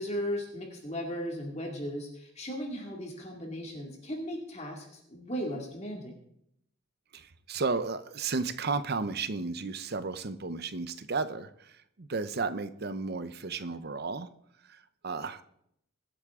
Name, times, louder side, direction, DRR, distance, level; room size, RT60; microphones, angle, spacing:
voice 1, 0.0-6.1, equal, 30° left, 2.3 m, -36 dB
voice 2, 7.1-14.3 14.6-15.4, right 4 dB, 50° right, 0.8 m, -33 dB
23.0 x 8.2 x 3.7 m
head